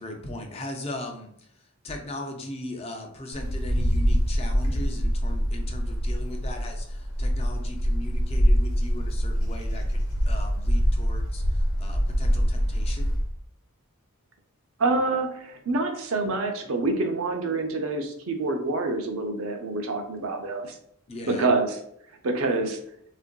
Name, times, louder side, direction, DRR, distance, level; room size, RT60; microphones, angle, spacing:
voice 1, 0.0-13.1 21.1-21.5, left 1 dB, 30° left, 3 dB, 0.4 m, -39 dB
Wind, 3.3-13.3, equal, 80° left, 0.9 m, -24 dB
voice 2, 14.8-20.8 21.2-21.8 22.2-22.8, right 3 dB, 70° right, 4 dB, 0.6 m, -26 dB
3.5 x 2.5 x 2.2 m, 0.69 s
head